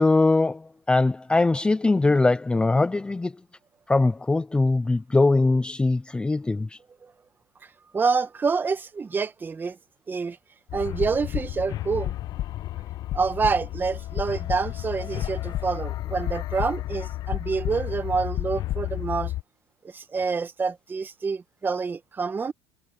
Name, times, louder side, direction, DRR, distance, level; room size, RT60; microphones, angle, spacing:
voice 1, 0.0-3.3 3.9-6.8, left 3 dB, 10° left, 0.6 m, -21 dB
voice 2, 7.9-9.8 10.1-10.4 10.7-12.1 13.1-19.3 19.9-22.5, right 5 dB, 25° right, 1.7 m, -27 dB
sound 1, 10.7-19.4, left 14 dB, 50° left, 1.1 m, -31 dB
supercardioid pair, 105°, 9 cm